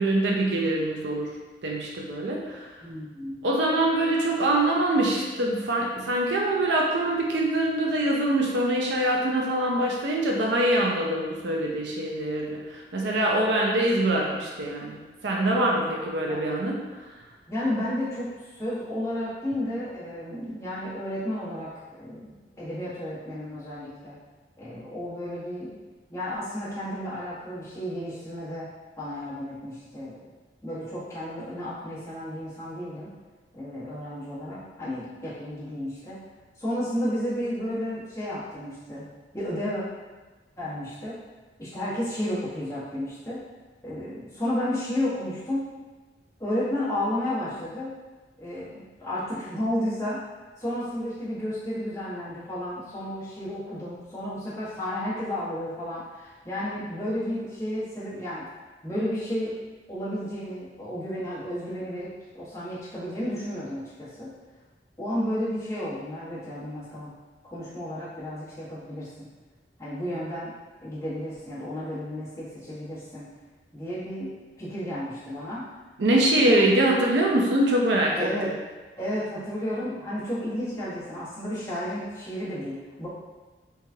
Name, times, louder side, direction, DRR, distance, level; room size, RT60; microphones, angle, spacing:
voice 1, 0.0-1.3 1.6-2.7 3.4-16.8 76.0-78.3, right 1 dB, 75° right, -1 dB, 0.5 m, -24 dB
voice 2, 2.8-3.4 15.9-16.4 17.5-24.1 24.6-25.8 26.1-28.7 29.0-30.2 30.6-33.1 33.5-36.2 36.6-39.0 39.3-39.8 40.6-41.1 41.6-43.4 43.8-45.6 46.4-47.9 48.4-50.2 50.6-58.4 58.8-59.5 59.9-64.3 65.0-67.1 67.5-69.3 69.8-70.5 70.8-73.3 73.7-74.3 74.6-75.6 76.1-76.6 78.1-78.5 79.0-83.1, left 1 dB, 15° left, -11 dB, 1.2 m, -32 dB
4.6 x 2.4 x 2.7 m, 1.2 s
head